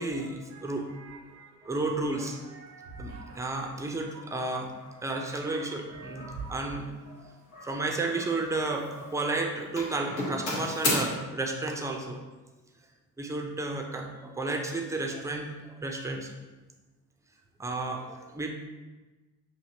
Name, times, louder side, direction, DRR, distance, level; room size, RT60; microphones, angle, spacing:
voice 1, 0.0-0.9 1.6-2.4 3.0-4.7 5.0-6.8 7.6-12.2 13.2-16.3 17.6-18.5, right 2 dB, 5° right, 2 dB, 0.4 m, -32 dB
voice 2, 0.9-1.7 2.2-3.7 4.1-4.2 5.2-5.3 5.9-6.6 7.1-7.3 9.3-9.4 10.0-10.1 10.5-11.0, right 4 dB, 70° right, 0 dB, 0.7 m, -46 dB
Doorbell, 4.8-5.0 5.5-5.9 6.2-6.5 7.5-8.6 8.8-9.3 9.8-11.0, left 1 dB, 80° left, 0.9 m, -33 dB
6.3 x 2.7 x 2.7 m, 1.2 s
figure-of-eight pair, 50°, 46 cm